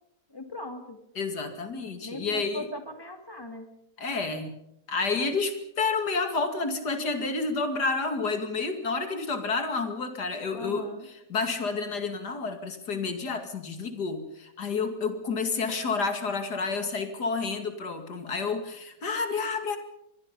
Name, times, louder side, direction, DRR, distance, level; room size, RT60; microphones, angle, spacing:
voice 1, 0.3-1.0 2.0-3.7 10.5-11.1, left 1 dB, 15° left, 6 dB, 2.2 m, -39 dB
voice 2, 1.1-2.7 4.0-4.5 4.9-19.8, left 4 dB, 85° left, 7 dB, 2.9 m, -30 dB
24.5 x 22.5 x 5.4 m, 0.79 s
omnidirectional pair, 1.7 m